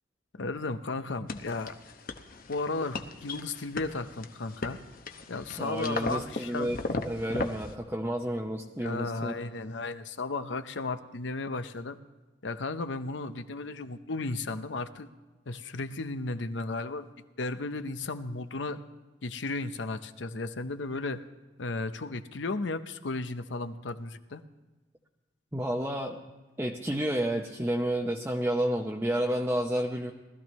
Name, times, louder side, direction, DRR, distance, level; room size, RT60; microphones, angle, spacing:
voice 1, 0.4-1.7 2.5-4.8 5.3-6.8 8.8-12.0 12.4-15.1 15.5-17.1 17.4-18.8 19.2-21.2 21.6-24.4, left 3 dB, 80° left, 10 dB, 0.8 m, -34 dB
sound 1, 1.3-7.7, left 3 dB, 50° left, 0.9 m, -37 dB
voice 2, 5.6-6.8 7.0-9.3 25.5-26.2 26.6-30.1, right 1 dB, 10° right, 0 dB, 0.7 m, -30 dB
19.5 x 13.5 x 3.1 m, 1.2 s
head